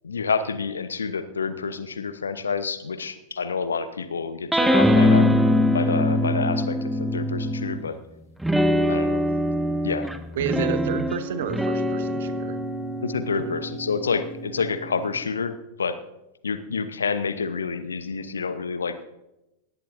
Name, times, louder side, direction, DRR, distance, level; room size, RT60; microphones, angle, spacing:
voice 1, 0.0-5.3 5.7-8.0 8.9-9.2 9.8-10.1 13.0-16.0 16.4-19.0, left 5 dB, 70° left, 12 dB, 0.9 m, -28 dB
sound 1, 4.5-7.9 8.4-15.2, left 1 dB, 5° right, 1.0 m, -23 dB
voice 2, 10.3-12.6 13.4-13.6, right 7 dB, 60° right, 11 dB, 1.2 m, -30 dB
18.5 x 15.0 x 2.7 m, 0.93 s
figure-of-eight pair, 90°, 0 cm